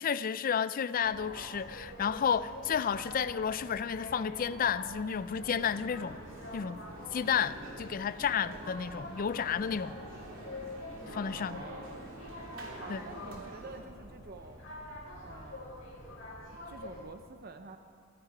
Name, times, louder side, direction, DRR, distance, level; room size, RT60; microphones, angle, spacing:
voice 1, 0.0-6.2 6.5-6.8 7.1-10.0 11.1-11.6 12.9-13.0, left 7 dB, 45° left, 0.4 m, -31 dB
sound 1, 1.0-17.0, left 1 dB, 80° left, 5.0 m, -46 dB
sound 2, 5.3-13.8, right 1 dB, 70° right, 2.8 m, -48 dB
voice 2, 11.3-11.9 12.8-14.6 15.2-15.8 16.7-17.8, right 3 dB, 50° right, 0.6 m, -48 dB
23.5 x 9.6 x 4.9 m
head